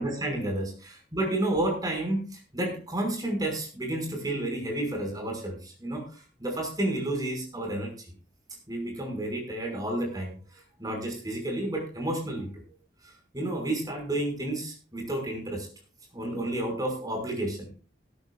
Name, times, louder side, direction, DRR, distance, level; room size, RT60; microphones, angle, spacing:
voice 1, 0.0-7.9 8.7-12.6 13.0-15.7 16.1-17.7, right 1 dB, 20° right, 1 dB, 5.4 m, -31 dB
18.0 x 12.5 x 2.4 m, 0.38 s
head